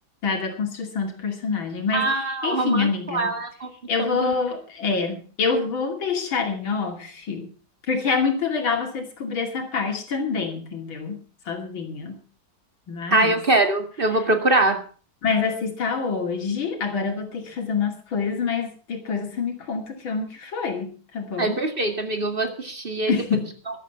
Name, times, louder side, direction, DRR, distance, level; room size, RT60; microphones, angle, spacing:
voice 1, 0.2-3.4 3.9-7.5 7.9-12.2 12.9-13.3 15.2-21.6 23.1-23.5, left 5 dB, 90° left, 4 dB, 3.4 m, -26 dB
voice 2, 1.9-3.7 4.0-4.3 13.1-14.8 21.4-23.4, right 2 dB, 25° right, 6 dB, 2.4 m, -23 dB
14.5 x 12.0 x 5.7 m, 0.38 s
omnidirectional pair, 2.1 m